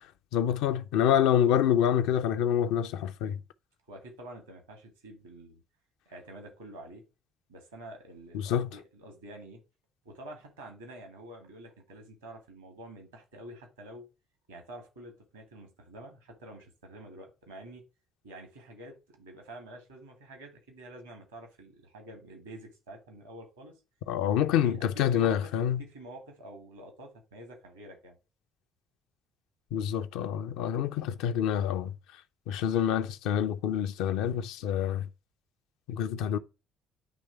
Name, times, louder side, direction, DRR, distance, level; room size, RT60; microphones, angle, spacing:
voice 1, 0.3-3.4 8.4-8.7 24.1-25.8 29.7-31.9 32.5-35.0 35.9-36.4, left 9 dB, 65° left, 0.4 m, -27 dB
voice 2, 3.9-5.6 6.1-7.0 7.5-9.6 10.0-14.0 14.5-17.8 18.2-23.8 24.6-25.5 25.8-28.2, right 1 dB, 85° right, 1.7 m, -48 dB
9.1 x 3.1 x 4.5 m
figure-of-eight pair, 50°, 0 cm